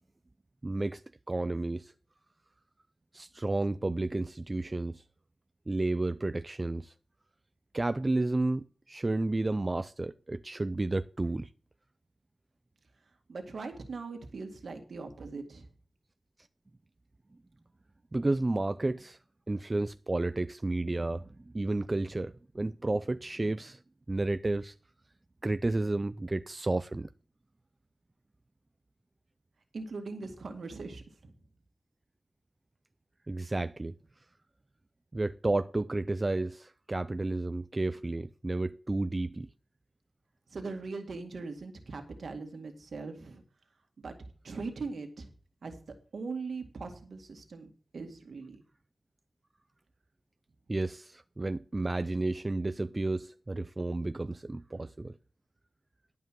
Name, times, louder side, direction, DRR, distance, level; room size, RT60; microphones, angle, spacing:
voice 1, 0.6-1.0 1.3-1.9 3.1-5.0 5.7-6.9 7.7-11.5 18.1-19.2 19.5-23.8 24.1-24.7 25.4-27.1 33.3-33.9 35.1-39.5 50.7-55.2, right 2 dB, 30° right, 0.4 m, -31 dB
voice 2, 13.3-15.7 29.7-31.3 40.5-43.4 44.0-44.1 44.4-45.3 45.6-45.8 46.1-48.6, right 4 dB, 70° right, 2.1 m, -40 dB
11.5 x 5.4 x 7.5 m
wide cardioid pair, 80°, 0 cm